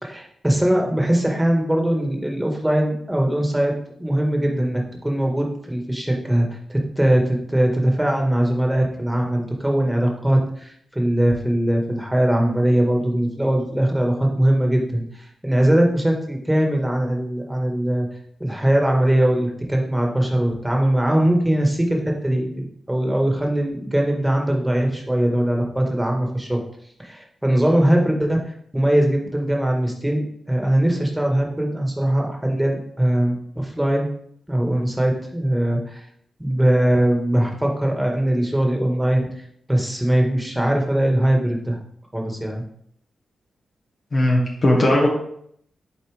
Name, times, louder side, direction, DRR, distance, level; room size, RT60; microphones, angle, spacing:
voice 1, 0.0-3.7 4.0-18.1 18.4-26.6 27.0-28.4 28.7-34.1 34.5-36.1 36.4-39.3 39.7-41.8 42.1-42.6, right 1 dB, 10° right, 1 dB, 1.8 m, -21 dB
voice 2, 44.1-45.1, left 1 dB, 55° left, -3 dB, 1.7 m, -17 dB
7.1 x 4.0 x 3.5 m, 0.68 s
supercardioid pair, 40°, 0 cm